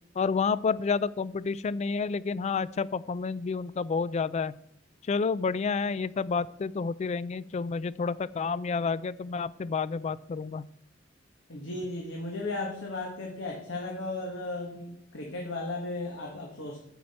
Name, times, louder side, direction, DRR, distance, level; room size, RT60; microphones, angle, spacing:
voice 1, 0.2-4.5 5.1-10.7, left 5 dB, 35° left, 18 dB, 0.3 m, -29 dB
voice 2, 11.5-16.9, left 2 dB, 75° left, -1 dB, 1.6 m, -35 dB
9.5 x 7.3 x 4.3 m, 0.71 s
head